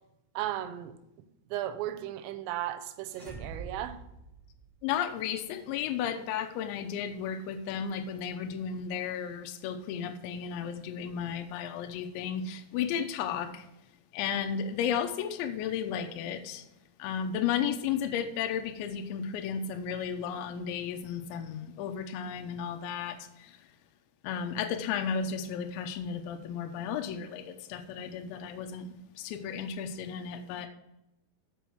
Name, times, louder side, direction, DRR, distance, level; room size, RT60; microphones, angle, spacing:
voice 1, 0.4-1.0 1.5-4.0, right 12 dB, 90° right, 3.3 m, -35 dB
sound 1, 3.0-5.0, right 4 dB, 70° right, 0.5 m, -45 dB
voice 2, 4.8-13.7 14.1-16.6 17.0-23.5 24.2-30.7, left 7 dB, 80° left, 2.7 m, -34 dB
7.0 x 5.4 x 6.0 m
omnidirectional pair, 5.8 m